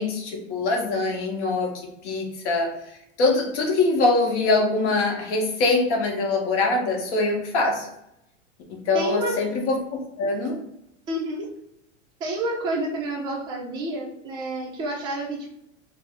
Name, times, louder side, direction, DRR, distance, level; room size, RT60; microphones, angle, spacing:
voice 1, 0.0-1.7 2.0-2.7 3.2-7.9 8.9-9.8 10.2-10.6, left 3 dB, 60° left, 2 dB, 0.9 m, -23 dB
voice 2, 8.9-9.3 11.1-11.5 12.2-15.6, right 1 dB, 10° right, -2 dB, 0.4 m, -29 dB
2.6 x 2.0 x 3.4 m, 0.79 s
supercardioid pair, 135°, 39 cm